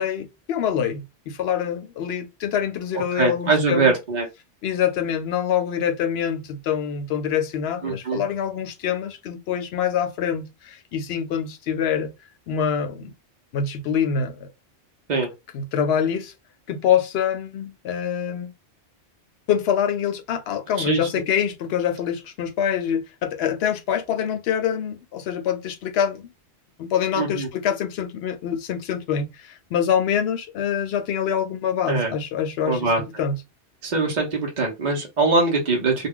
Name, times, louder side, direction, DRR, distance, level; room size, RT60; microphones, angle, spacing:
voice 1, 0.0-3.9 4.6-12.1 12.5-13.1 13.5-14.5 15.5-16.3 16.7-18.5 19.5-26.3 26.8-33.4, left 8 dB, 70° left, 0.8 m, -25 dB
voice 2, 3.1-4.3 7.8-8.2 15.1-15.3 20.8-21.1 27.2-27.5 31.9-32.1 32.6-33.0 33.8-36.1, right 3 dB, 45° right, 0.7 m, -22 dB
2.3 x 2.2 x 3.5 m
omnidirectional pair, 1.2 m